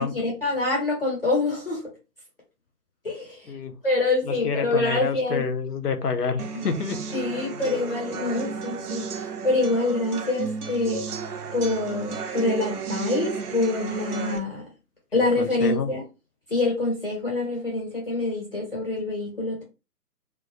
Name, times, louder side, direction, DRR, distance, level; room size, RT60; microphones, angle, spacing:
voice 1, 0.0-1.8 3.0-3.5 3.8-5.4 6.5-6.7 7.1-11.1 11.5-14.7 15.1-16.0 16.5-19.6, left 2 dB, 35° left, 0.7 m, -26 dB
voice 2, 4.3-7.0 15.4-15.9, left 5 dB, 70° left, 0.6 m, -28 dB
sound 1, 6.4-14.4, right 5 dB, 65° right, 0.6 m, -33 dB
2.2 x 2.1 x 2.7 m
figure-of-eight pair, 150°, 50 cm